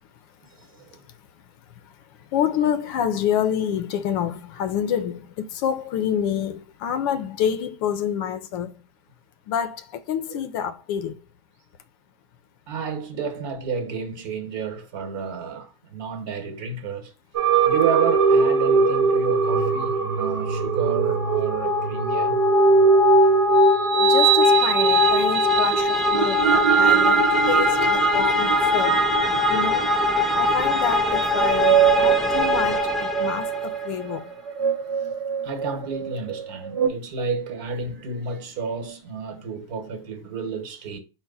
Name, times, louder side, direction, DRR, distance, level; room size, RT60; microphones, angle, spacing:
voice 1, 0.6-1.0 10.3-10.4 12.7-17.1 17.6-22.4 23.2-23.3 23.9-24.1 29.3-29.5 35.4-41.0, right 5 dB, 55° right, 1.3 m, -31 dB
voice 2, 2.3-8.7 9.5-11.1 24.0-29.0 29.5-29.9 30.3-34.2, left 8 dB, 50° left, 0.5 m, -27 dB
sound 1, 17.3-36.9, right 6 dB, 80° right, 0.9 m, -22 dB
sound 2, 21.1-33.9, left 4 dB, ahead, 0.4 m, -22 dB
4.6 x 2.1 x 4.0 m
supercardioid pair, 145°, 14 cm